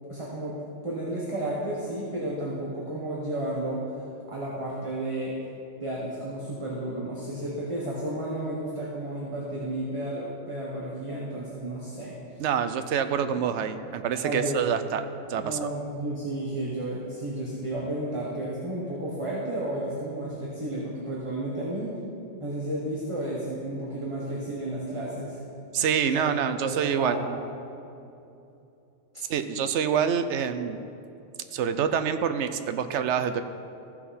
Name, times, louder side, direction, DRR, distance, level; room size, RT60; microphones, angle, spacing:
voice 1, 0.1-0.6 0.8-3.8 4.3-5.3 5.8-12.2 14.2-14.6 15.4-21.9 22.4-25.4 26.1-26.3 26.6-27.3 29.1-29.2, right 1 dB, 25° right, -5 dB, 1.2 m, -32 dB
voice 2, 12.4-15.0 15.3-15.7 25.7-27.2 29.3-30.8 31.5-33.4, right 7 dB, 75° right, 10 dB, 0.9 m, -26 dB
14.5 x 5.8 x 4.2 m, 2.7 s
omnidirectional pair, 1.2 m